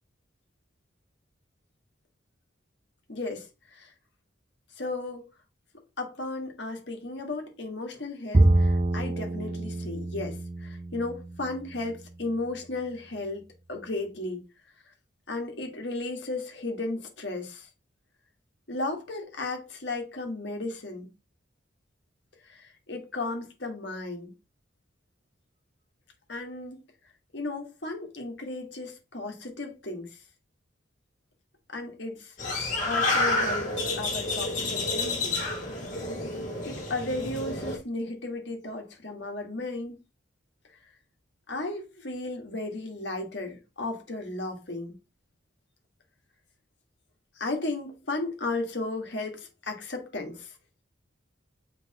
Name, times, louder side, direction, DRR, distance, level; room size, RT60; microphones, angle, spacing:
voice 1, 3.1-3.9 4.8-5.3 6.0-14.4 15.3-17.7 18.7-21.1 22.4-24.3 26.3-26.8 27.3-30.1 31.7-33.7 34.0-35.4 36.6-40.0 41.5-45.0 47.4-50.5, left 2 dB, 60° left, 1.8 m, -35 dB
Bowed string instrument, 8.3-11.7, right 2 dB, 30° right, 0.5 m, -26 dB
sound 1, 32.4-37.8, left 2 dB, 40° left, 2.5 m, -29 dB
7.4 x 4.9 x 3.0 m
head